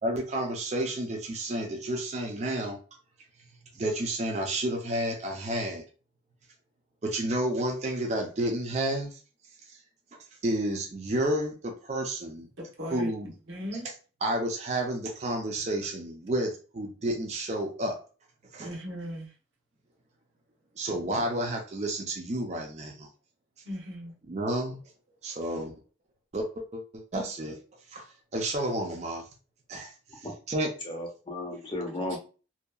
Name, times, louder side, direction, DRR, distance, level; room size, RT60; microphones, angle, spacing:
voice 1, 0.0-2.8 3.7-5.8 7.0-9.2 9.7-9.8 10.1-12.5 12.9-13.3 14.2-18.0 18.5-18.7 20.8-23.1 24.3-24.8 25.2-25.7 26.3-27.6 27.9-29.2 29.7-30.2 30.5-30.7, right 1 dB, 35° right, 0.4 m, -31 dB
voice 2, 12.6-13.9 18.6-19.3 23.6-24.1 32.1-32.2, equal, 90° right, 0.9 m, -38 dB
voice 3, 30.8-32.2, left 1 dB, 25° left, 0.6 m, -34 dB
2.7 x 2.2 x 2.3 m
head